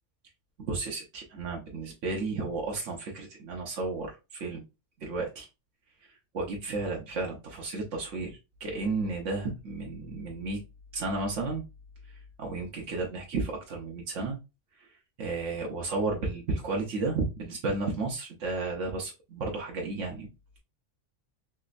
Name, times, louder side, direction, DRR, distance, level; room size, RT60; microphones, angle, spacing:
voice 1, 0.6-4.6 5.0-5.5 6.3-10.6 10.9-11.6 12.4-14.4 15.2-20.3, right 3 dB, 90° right, 1.2 m, -33 dB
3.4 x 3.0 x 2.5 m
omnidirectional pair, 1.2 m